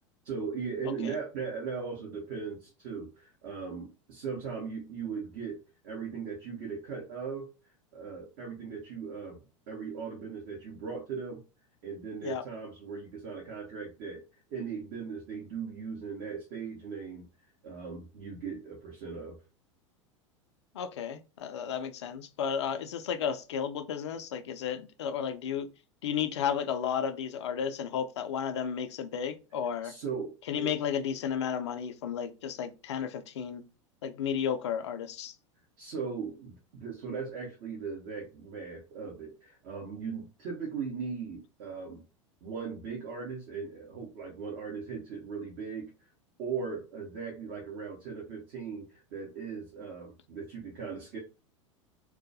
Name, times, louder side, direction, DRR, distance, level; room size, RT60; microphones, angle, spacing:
voice 1, 0.2-7.5 7.9-11.4 11.8-14.2 14.5-17.3 17.6-19.4 29.8-30.7 35.8-42.0 42.4-45.9 46.4-51.2, right 5 dB, 45° right, 0.8 m, -38 dB
voice 2, 20.7-25.7 26.0-29.9 30.5-33.7 34.0-35.3, left 8 dB, 60° left, 0.4 m, -33 dB
2.3 x 2.2 x 2.6 m
figure-of-eight pair, 85°, 17 cm